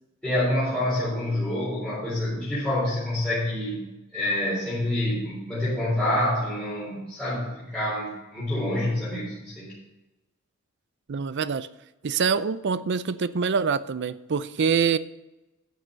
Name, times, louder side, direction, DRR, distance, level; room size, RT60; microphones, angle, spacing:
voice 1, 0.2-3.9 4.1-9.7, left 1 dB, 5° left, 3.7 m, -27 dB
voice 2, 11.1-11.7 12.0-15.0, right 6 dB, 55° right, 0.5 m, -25 dB
10.5 x 6.7 x 6.3 m
head